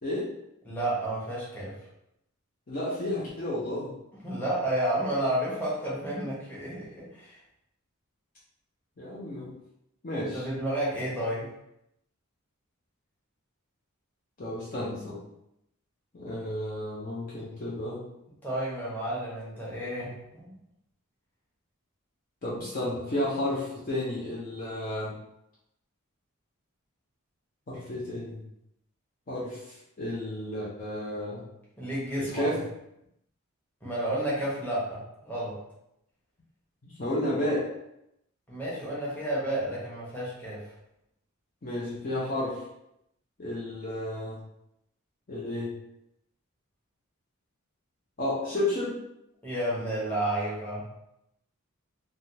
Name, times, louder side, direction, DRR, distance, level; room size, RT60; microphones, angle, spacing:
voice 1, 0.0-0.3 2.7-4.0 9.0-9.5 10.0-10.5 14.4-15.2 16.1-18.1 22.4-25.2 27.7-28.4 29.3-31.5 32.2-32.6 36.8-37.7 41.6-42.6 43.4-44.4 45.3-45.7 48.2-49.0, left 1 dB, 40° left, -7 dB, 0.6 m, -32 dB
voice 2, 0.7-1.8 4.2-7.4 10.2-11.5 18.4-20.5 31.8-32.5 33.8-35.6 38.5-40.6 49.4-50.9, right 1 dB, 10° left, -8 dB, 1.0 m, -31 dB
3.4 x 2.2 x 2.7 m, 0.82 s
head